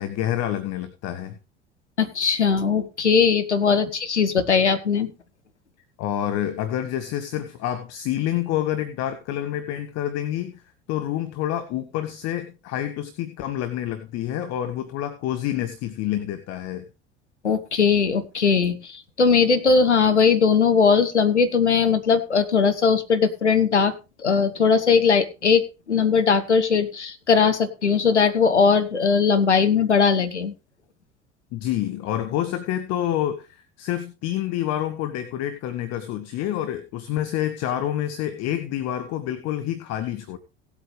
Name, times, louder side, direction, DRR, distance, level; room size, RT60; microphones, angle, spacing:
voice 1, 0.0-1.4 6.0-10.6 10.9-16.8 31.5-40.4, left 12 dB, 50° left, 9 dB, 1.2 m, -28 dB
voice 2, 2.0-5.1 17.4-24.0 24.2-30.5, left 5 dB, 85° left, 7 dB, 1.0 m, -19 dB
17.5 x 8.3 x 3.3 m, 0.29 s
figure-of-eight pair, 65°, 34 cm